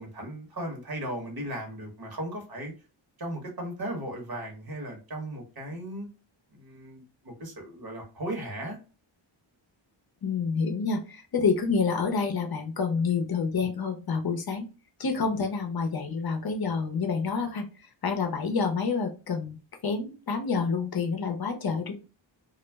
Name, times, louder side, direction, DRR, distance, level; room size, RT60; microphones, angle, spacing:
voice 1, 0.0-2.7 3.2-6.1 6.5-8.8, right 1 dB, 50° right, 1 dB, 1.1 m, -36 dB
voice 2, 10.2-14.7 15.0-17.6 18.0-19.6 19.8-21.9, left 5 dB, 50° left, 4 dB, 0.6 m, -28 dB
2.4 x 2.0 x 3.2 m, 0.33 s
wide cardioid pair, 105°, 47 cm